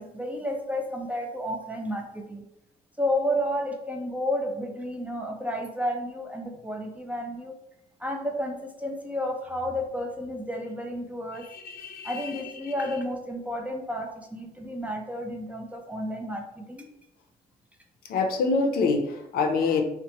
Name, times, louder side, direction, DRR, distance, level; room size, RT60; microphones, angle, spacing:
voice 1, 0.0-2.4 3.0-7.5 8.0-11.4 12.0-16.9, equal, 10° right, 2 dB, 0.3 m, -31 dB
voice 2, 11.4-12.9 18.1-19.8, left 4 dB, 65° left, 4 dB, 0.5 m, -27 dB
2.9 x 2.1 x 2.8 m, 0.84 s
cardioid pair, 110°, 17 cm